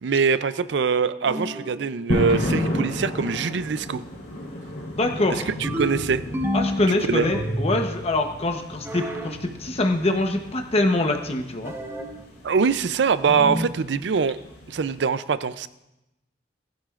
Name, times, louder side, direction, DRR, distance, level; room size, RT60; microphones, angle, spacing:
voice 1, 0.0-4.0 5.3-6.2 7.1-7.3 12.4-14.4 14.7-15.7, right 5 dB, 85° right, 14 dB, 0.5 m, -23 dB
sound 1, 1.3-1.8 2.5-3.0 5.6-6.8 7.2-7.9 8.8-9.3 11.6-12.2 13.3-13.8, equal, 15° right, 1.1 m, -28 dB
sound 2, 2.1-15.0, equal, 90° left, 4.0 m, -33 dB
voice 2, 4.8-5.5 6.5-11.7, left 2 dB, 35° left, 4 dB, 0.9 m, -24 dB
18.5 x 11.5 x 2.5 m, 0.92 s
head